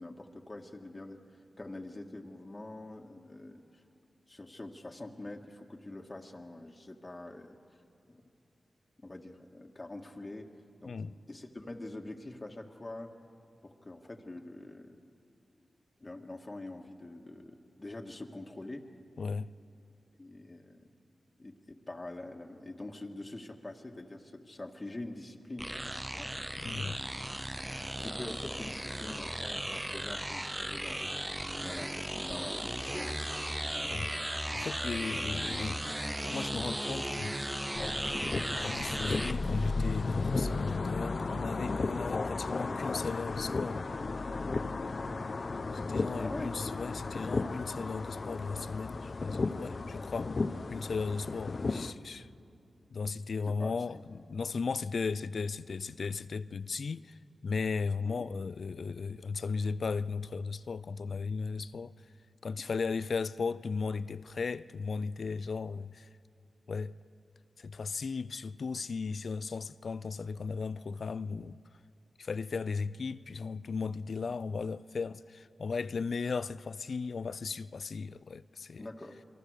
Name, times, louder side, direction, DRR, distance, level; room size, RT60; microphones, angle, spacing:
voice 1, 0.0-3.8 4.3-7.8 8.1-8.2 9.0-10.5 10.8-11.0 11.3-13.1 13.6-15.0 16.0-18.8 20.2-20.9 21.4-25.7 26.1-26.3 28.0-31.1 31.6-33.4 46.2-46.5 49.7-49.8 53.5-54.0 58.0-58.3 78.8-79.2, left 2 dB, 35° left, 1.9 m, -45 dB
voice 2, 10.9-11.2 19.2-19.5 26.6-27.0 33.8-37.4 38.1-43.8 45.7-50.4 50.7-52.3 52.9-61.9 62.4-66.1 66.7-67.0 67.6-71.6 72.2-78.8, left 4 dB, 70° left, 0.5 m, -36 dB
sound 1, 25.6-39.3, right 1 dB, 15° right, 0.9 m, -36 dB
sound 2, 37.7-51.9, left 3 dB, 55° left, 0.9 m, -34 dB
28.0 x 22.0 x 6.6 m
cardioid pair, 45°, 0 cm